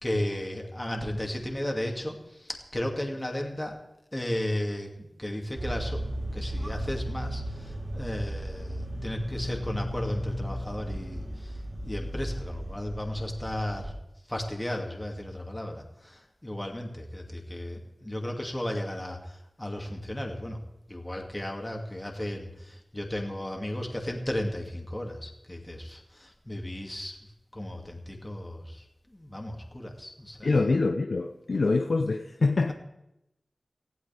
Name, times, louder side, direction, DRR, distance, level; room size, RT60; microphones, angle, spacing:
voice 1, 0.0-3.8 4.1-6.0 6.3-11.6 11.8-13.9 14.3-20.6 20.9-27.2 27.5-28.8 29.1-30.6, left 1 dB, 15° left, 2 dB, 2.5 m, -34 dB
sound 1, 5.6-13.9, equal, 35° right, 5.4 m, -35 dB
voice 2, 30.4-32.7, left 3 dB, 70° left, 5 dB, 0.8 m, -25 dB
18.5 x 15.5 x 3.6 m, 0.87 s
wide cardioid pair, 80°, 0 cm